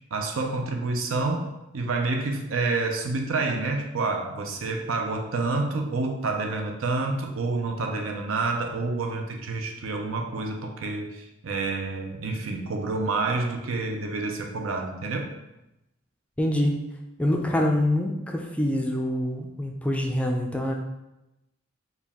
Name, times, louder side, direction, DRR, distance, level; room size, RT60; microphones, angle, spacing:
voice 1, 0.1-1.5 1.7-15.3, right 3 dB, 80° right, 3 dB, 0.5 m, -28 dB
voice 2, 16.4-16.7 17.2-20.7, left 1 dB, 5° left, 1 dB, 0.3 m, -25 dB
4.5 x 2.3 x 3.5 m, 0.92 s
head